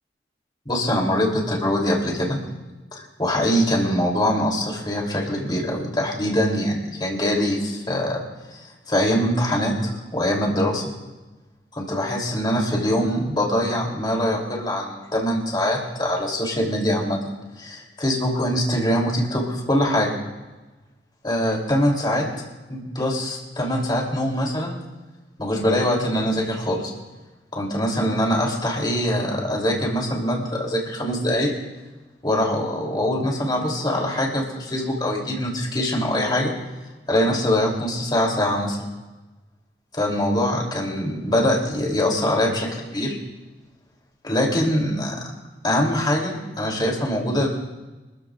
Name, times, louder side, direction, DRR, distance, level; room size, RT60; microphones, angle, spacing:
voice 1, 0.6-2.4 2.9-8.2 8.5-10.9 11.7-17.2 17.6-20.1 21.2-22.3 22.7-24.8 25.4-26.9 27.5-31.5 32.2-36.5 37.1-38.8 39.9-43.2 44.2-45.2 45.6-47.5, equal, 25° left, -1 dB, 3.1 m, -23 dB
25.5 x 14.0 x 2.5 m, 1.2 s
head